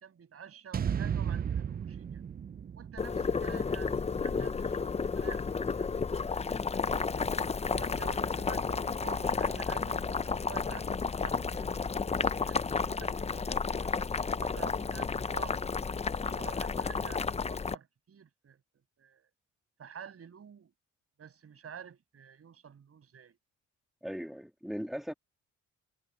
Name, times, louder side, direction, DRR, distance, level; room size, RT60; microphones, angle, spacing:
voice 1, 0.0-2.2 2.7-5.9 6.4-11.7 12.4-15.6 16.2-18.6 19.0-19.3 19.8-20.7 21.2-23.4, right 7 dB, 50° right, 7.1 m, -49 dB
sound 1, 0.7-5.0, right 8 dB, 30° right, 0.5 m, -36 dB
Boiling, 3.0-17.7, left 5 dB, 20° left, 0.6 m, -32 dB
voice 2, 24.0-25.1, equal, ahead, 2.6 m, -38 dB
cardioid pair, 90°, 30 cm